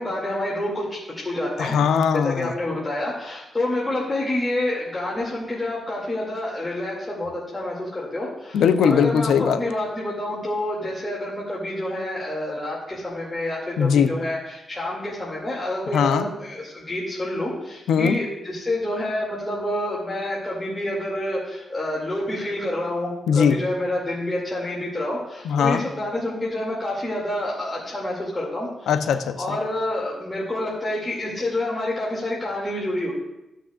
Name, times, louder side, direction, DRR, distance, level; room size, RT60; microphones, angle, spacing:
voice 1, 0.0-1.7 2.1-28.9 29.4-33.1, left 1 dB, 25° left, -6 dB, 2.5 m, -28 dB
voice 2, 1.6-2.5 8.5-9.6 13.8-14.1 15.9-16.3 17.9-18.2 23.3-23.6 25.4-25.8 28.9-29.6, left 7 dB, 85° left, 9 dB, 0.6 m, -20 dB
15.0 x 6.2 x 2.5 m, 0.93 s
cardioid pair, 65°, 0 cm